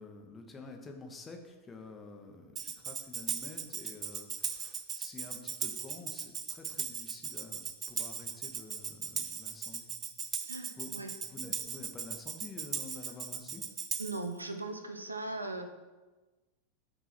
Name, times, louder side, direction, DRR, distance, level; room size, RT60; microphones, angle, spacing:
voice 1, 0.0-10.0 10.8-13.6, left 3 dB, 15° left, 3 dB, 0.9 m, -49 dB
Tambourine, 2.6-14.3, right 7 dB, 25° right, 0.5 m, -38 dB
voice 2, 10.5-11.1 14.0-15.6, right 2 dB, 80° right, 7 dB, 0.6 m, -39 dB
5.8 x 3.7 x 5.9 m, 1.2 s
figure-of-eight pair, 90°, 0 cm